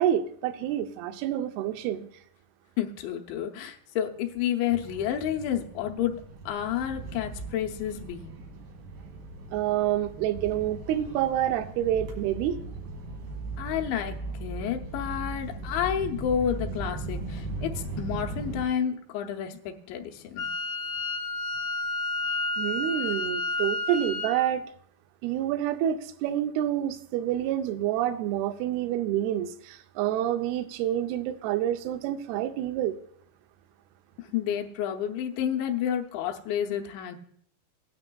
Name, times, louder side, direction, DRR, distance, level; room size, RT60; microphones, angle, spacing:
voice 1, 0.0-2.1 9.5-12.6 22.6-24.7 25.2-33.0, right 11 dB, 80° right, 7 dB, 2.3 m, -28 dB
voice 2, 2.8-6.2 6.5-8.3 13.6-20.5 34.2-37.2, left 9 dB, 90° left, 2 dB, 3.1 m, -30 dB
sound 1, 4.7-18.6, right 3 dB, 60° right, 3.0 m, -38 dB
Wind instrument woodwind instrument, 20.4-24.4, left 2 dB, 70° left, 2.4 m, -30 dB
18.0 x 9.6 x 2.3 m, 0.66 s
omnidirectional pair, 5.0 m